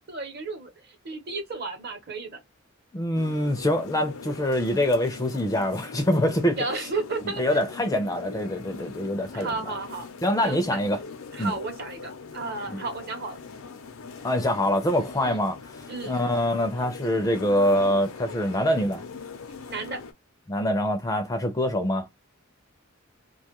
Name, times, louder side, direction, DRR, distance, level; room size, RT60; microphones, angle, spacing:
voice 1, 0.1-2.4 6.6-7.6 9.3-10.1 10.4-10.8 11.3-13.4 15.2-15.4 15.9-16.2 19.7-20.0, right 3 dB, 50° right, 0.8 m, -33 dB
voice 2, 2.9-6.6 7.4-9.6 10.2-11.0 11.4-11.5 12.7-12.8 14.2-15.6 16.1-19.0 20.5-22.1, left 1 dB, 15° left, 0.4 m, -24 dB
sound 1, 3.1-20.1, left 5 dB, 85° left, 0.5 m, -41 dB
2.5 x 2.3 x 2.8 m
head